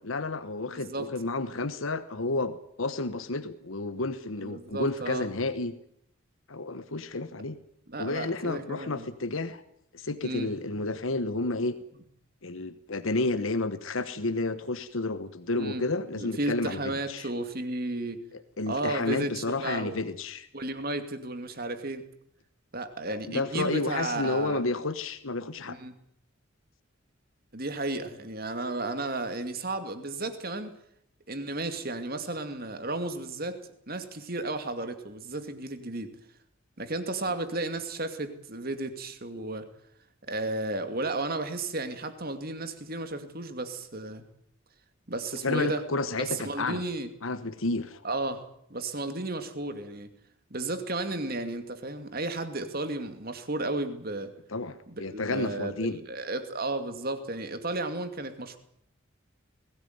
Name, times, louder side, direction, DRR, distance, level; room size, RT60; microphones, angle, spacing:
voice 1, 0.0-5.7 6.5-7.6 8.0-9.6 9.9-11.7 12.4-17.3 18.3-20.5 23.0-25.8 37.3-37.4 45.4-46.8 47.2-48.0 54.5-56.0, left 2 dB, 80° left, 11 dB, 1.2 m, -31 dB
voice 2, 0.7-1.1 4.4-5.3 7.9-9.1 10.2-10.5 15.6-15.8 16.2-18.2 18.7-20.0 20.5-22.0 22.7-24.6 25.7-25.9 27.5-30.8 31.3-36.1 36.8-39.7 40.2-44.2 45.1-45.9 46.2-47.1 48.0-50.1 50.5-54.3 54.9-58.6, right 2 dB, 45° right, 9 dB, 2.5 m, -33 dB
21.0 x 17.0 x 9.5 m, 0.70 s
head